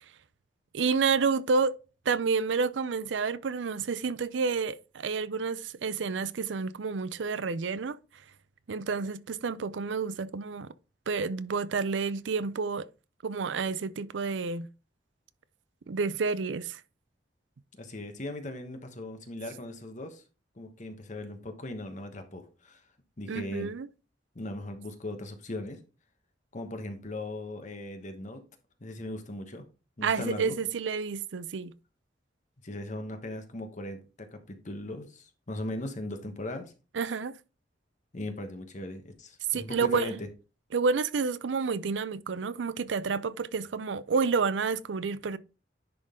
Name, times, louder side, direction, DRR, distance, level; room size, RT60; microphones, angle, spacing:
voice 1, 0.7-1.7 2.1-8.0 8.7-10.7 11.1-12.9 13.2-14.7 15.9-16.8 23.3-23.9 30.0-31.7 36.9-37.3 39.5-40.2 40.7-45.4, right 5 dB, 75° right, 0.5 m, -29 dB
voice 2, 17.7-20.2 20.6-22.8 23.2-23.7 24.3-25.8 26.5-28.4 28.8-29.6 30.0-30.6 32.6-36.7 38.1-40.3, left 1 dB, 45° left, 1.1 m, -38 dB
10.5 x 3.8 x 3.7 m
head